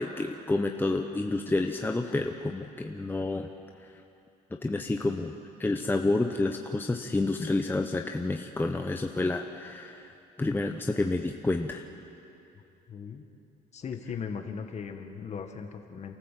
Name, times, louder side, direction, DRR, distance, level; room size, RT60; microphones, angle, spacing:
voice 1, 0.0-3.5 4.6-5.3 5.6-10.1 10.4-11.9, left 2 dB, 10° left, 4 dB, 1.0 m, -29 dB
voice 2, 12.9-13.2 13.7-16.1, left 6 dB, 40° left, 5 dB, 1.9 m, -38 dB
28.5 x 14.0 x 7.7 m, 2.8 s
cardioid pair, 110°, 17 cm